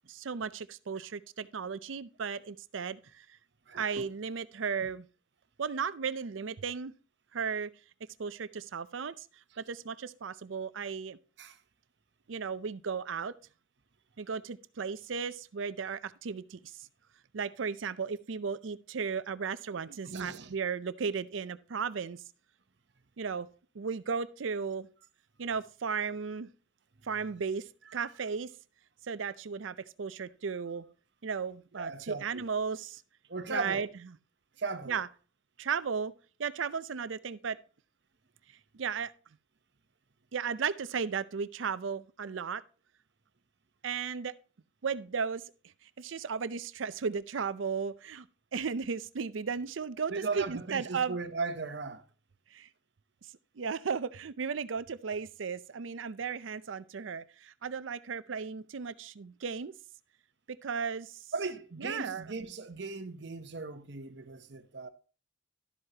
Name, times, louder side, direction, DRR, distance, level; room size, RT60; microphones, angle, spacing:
voice 1, 0.1-3.3 3.8-5.1 5.6-6.9 7.3-7.7 8.2-9.3 9.6-11.2 12.3-13.3 14.2-16.9 17.3-22.2 23.2-23.5 23.7-24.9 25.4-26.5 27.0-28.5 29.0-30.9 31.2-33.0 33.5-33.9 34.9-35.1 35.6-36.1 36.4-37.6 38.7-39.1 40.3-42.6 43.8-44.3 44.8-45.4 45.8-48.3 48.5-51.2 52.5-52.7 53.6-59.7 60.5-61.3 61.8-62.2, right 6 dB, 85° right, 0.5 m, -35 dB
voice 2, 3.7-4.1 4.8-4.9 11.4-11.6 20.0-20.5 31.8-32.4 33.3-33.9 34.6-35.0 50.1-52.0 61.3-64.9, right 4 dB, 60° right, 0.9 m, -37 dB
12.5 x 7.9 x 2.9 m
head